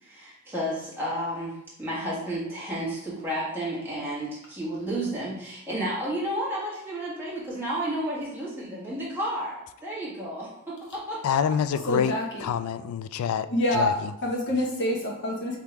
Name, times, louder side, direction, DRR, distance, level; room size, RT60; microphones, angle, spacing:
voice 1, 0.0-11.4, right 1 dB, 10° right, -8 dB, 1.6 m, -32 dB
voice 2, 11.2-12.2 12.4-13.5 13.7-14.1, left 8 dB, 85° left, 16 dB, 0.3 m, -26 dB
voice 3, 11.9-12.5 13.5-15.6, left 1 dB, 55° left, -1 dB, 1.1 m, -27 dB
3.6 x 2.8 x 4.6 m, 0.83 s
head